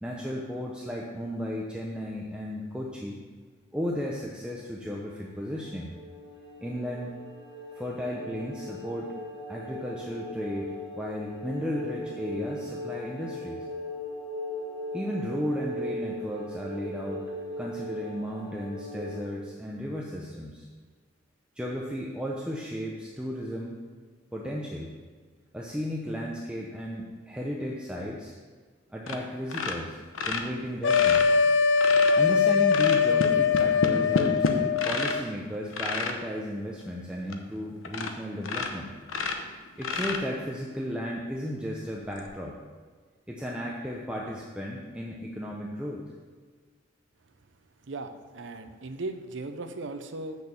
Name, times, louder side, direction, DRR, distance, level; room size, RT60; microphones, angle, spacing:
voice 1, 0.0-3.2 3.7-5.9 6.6-7.1 7.8-9.1 9.5-13.6 14.9-17.3 17.6-20.7 21.6-23.7 24.3-24.9 25.5-28.4 28.9-30.0 30.2-31.3 32.2-34.5 34.8-38.9 39.8-42.6 43.3-46.0, equal, 5° right, -3 dB, 0.7 m, -34 dB
sound 1, 5.1-19.2, left 1 dB, 45° left, 3.0 m, -39 dB
sound 2, 29.1-29.2 29.5-32.2 32.7-35.2 35.7-36.2 36.8-36.9 37.3-37.4 37.8-38.2 38.4-40.6 42.1-42.2, left 3 dB, 80° left, 0.8 m, -30 dB
sound 3, 30.8-35.2, left 6 dB, 60° left, 0.4 m, -22 dB
voice 2, 47.9-50.4, right 2 dB, 65° right, 7 dB, 0.7 m, -37 dB
6.9 x 6.3 x 7.0 m, 1.5 s
head